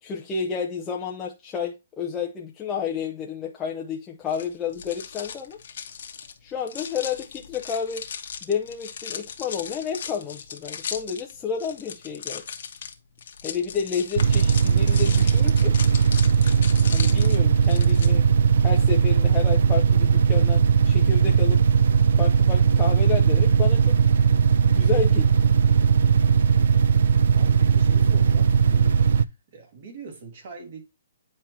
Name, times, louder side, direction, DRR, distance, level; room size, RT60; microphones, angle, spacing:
voice 1, 0.0-5.6 6.4-8.1 8.4-12.4 13.4-15.8 16.9-18.3 18.6-21.6 22.2-24.3 24.6-25.4, left 6 dB, 15° left, 0.7 m, -30 dB
sound 1, 4.3-18.1, left 7 dB, 55° left, 1.2 m, -37 dB
sound 2, 14.2-29.2, right 6 dB, 65° right, 0.4 m, -18 dB
voice 2, 27.3-29.0 29.5-30.8, right 4 dB, 45° right, 2.8 m, -41 dB
9.1 x 4.5 x 2.8 m
hypercardioid pair, 165°, 0 cm